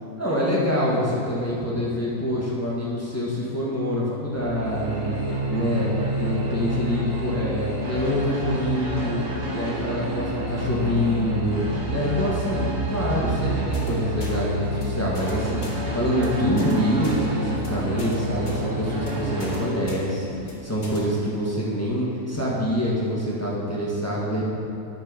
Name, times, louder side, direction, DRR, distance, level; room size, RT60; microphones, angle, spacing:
voice 1, 0.2-5.2 5.5-5.9 6.2-9.3 9.5-11.6 11.9-24.5, equal, 10° left, -6 dB, 1.5 m, -25 dB
sound 1, 4.3-19.6, right 1 dB, 55° right, 2.5 m, -29 dB
sound 2, 9.4-15.4, left 5 dB, 55° left, 1.0 m, -39 dB
sound 3, 13.7-13.9 14.2-14.3 14.6-14.8 15.1-15.3 15.6-15.8 16.1-16.3 16.6-16.7 17.0-17.2 17.5-17.7 18.0-18.1 18.4-18.6 18.9-19.1 19.4-19.6 19.9-20.0 20.3-20.5 20.8-21.0, left 1 dB, 30° left, 1.7 m, -40 dB
10.0 x 6.2 x 5.1 m, 3.0 s
omnidirectional pair, 1.7 m